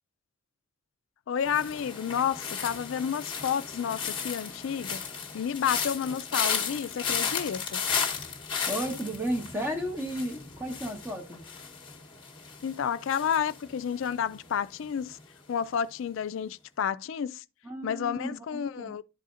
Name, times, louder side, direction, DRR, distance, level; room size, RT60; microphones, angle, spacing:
voice 1, 1.3-5.0 5.3-7.8 12.6-15.2 15.5-17.4 17.8-19.0, left 8 dB, 60° left, 0.3 m, -30 dB
Walking through dry leaves close-by and afar, 1.4-14.5 14.7-15.2, left 6 dB, 25° left, 1.0 m, -34 dB
voice 2, 8.7-11.4 17.6-18.9, equal, 10° right, 1.0 m, -33 dB
11.5 x 4.1 x 2.5 m
head